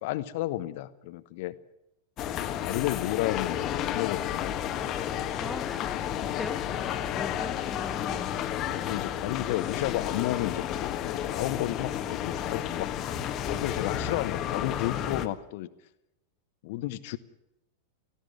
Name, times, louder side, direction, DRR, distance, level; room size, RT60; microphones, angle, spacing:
voice 1, 0.0-1.6 2.3-4.5 6.7-7.0 8.7-12.9 13.2-15.7 16.6-17.2, left 16 dB, 50° left, 15 dB, 1.1 m, -32 dB
sound 1, 2.2-15.3, left 10 dB, 35° left, 1.5 m, -32 dB
voice 2, 5.4-6.1 6.4-8.3, left 2 dB, 5° left, 14 dB, 1.0 m, -41 dB
18.5 x 16.0 x 9.3 m, 0.87 s
figure-of-eight pair, 90°, 0 cm